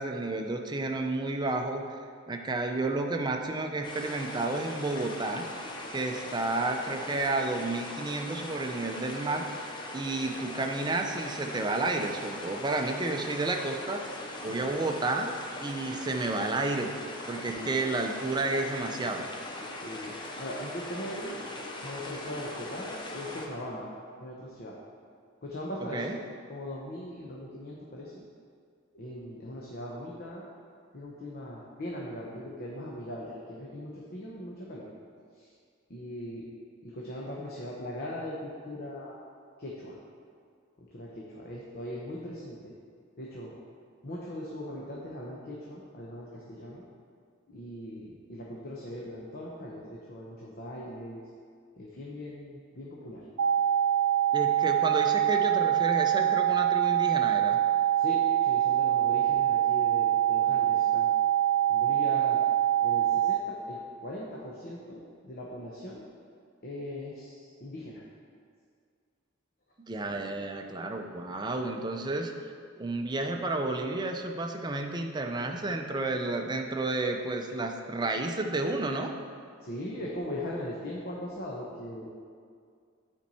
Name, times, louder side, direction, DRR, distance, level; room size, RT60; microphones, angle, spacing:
voice 1, 0.0-2.0 2.3-5.5 5.9-14.0 14.4-15.3 15.6-16.9 17.3-19.3 25.9-26.2 54.3-57.6 69.9-72.5 72.8-79.1, right 2 dB, 20° right, 3 dB, 0.5 m, -31 dB
sound 1, 3.8-23.5, left 2 dB, 25° left, 0.7 m, -40 dB
voice 2, 14.5-14.8 17.5-17.8 19.8-20.1 20.4-21.4 21.8-24.8 25.4-26.1 26.5-28.2 28.9-30.5 30.9-34.9 35.4-35.5 35.9-36.5 36.8-39.2 39.6-40.0 40.8-42.7 43.2-43.6 44.0-46.8 47.5-51.2 51.8-53.2 57.9-61.1 61.7-62.4 62.8-66.1 66.6-68.0 70.1-70.2 79.6-82.2, left 1 dB, 50° left, -4 dB, 0.8 m, -40 dB
sound 2, 53.4-63.4, right 11 dB, 80° right, 0.4 m, -24 dB
8.9 x 4.5 x 4.2 m, 2.2 s
head